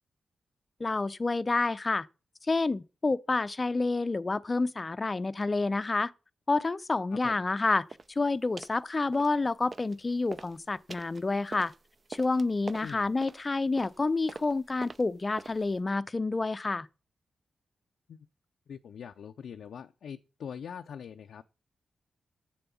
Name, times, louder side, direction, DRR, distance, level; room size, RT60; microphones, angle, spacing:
voice 1, 0.8-2.1 2.5-6.1 6.5-7.8 8.2-11.7 12.1-16.9, left 3 dB, 25° left, 0.5 m, -29 dB
voice 2, 7.1-7.4 12.8-13.1 18.1-18.2 18.7-21.4, left 7 dB, 80° left, 0.5 m, -43 dB
sound 1, 7.9-8.1 8.6-8.8 9.1-10.0 10.2-15.8, right 3 dB, 35° right, 0.5 m, -45 dB
7.8 x 7.1 x 7.0 m
wide cardioid pair, 120°, 0 cm